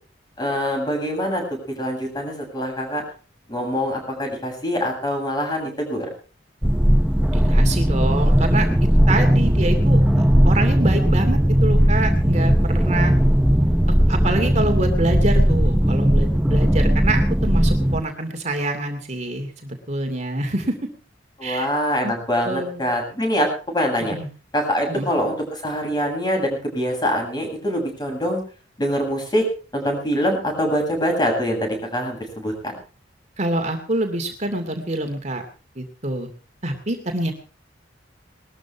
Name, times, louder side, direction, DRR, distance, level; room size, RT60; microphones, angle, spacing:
voice 1, 0.4-1.4 1.8-3.0 3.5-6.1 21.4-24.2 24.5-28.4 28.8-29.5 29.7-32.7, equal, 25° left, 2 dB, 7.8 m, -24 dB
sound 1, 6.6-18.0, equal, 5° right, 0.7 m, -17 dB
voice 2, 7.3-8.7 9.1-13.1 14.1-20.8 21.4-21.7 22.0-22.1 22.4-22.8 24.1-24.3 24.9-25.1 33.4-35.4 35.8-36.3 36.6-37.3, right 1 dB, 40° right, 5 dB, 2.5 m, -26 dB
20.5 x 13.5 x 4.5 m, 0.37 s
head